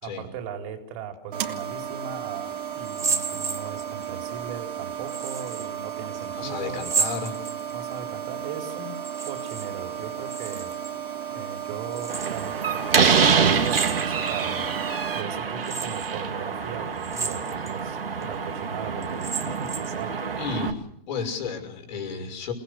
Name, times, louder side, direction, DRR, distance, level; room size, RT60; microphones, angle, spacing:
voice 1, 0.0-6.9 7.7-10.7 11.3-20.2, right 6 dB, 35° right, 4 dB, 4.3 m, -38 dB
sound 1, 1.3-15.2, right 9 dB, 60° right, 3.2 m, -34 dB
sound 2, 2.8-4.1 5.1-5.7 6.7-7.9 8.9-9.7 9.9-10.9 11.9-12.5 13.6-14.4 15.0-15.1 15.6-16.1 17.0-17.7 18.2-18.3 19.0-20.0, right 5 dB, 10° right, 2.4 m, -31 dB
voice 2, 6.2-7.4 20.4-20.8 21.1-22.5, left 5 dB, 50° left, 6 dB, 6.2 m, -32 dB
Slam, 12.1-20.7, right 6 dB, 75° right, 2.9 m, -26 dB
29.0 x 19.5 x 6.7 m, 0.69 s
figure-of-eight pair, 120°, 29 cm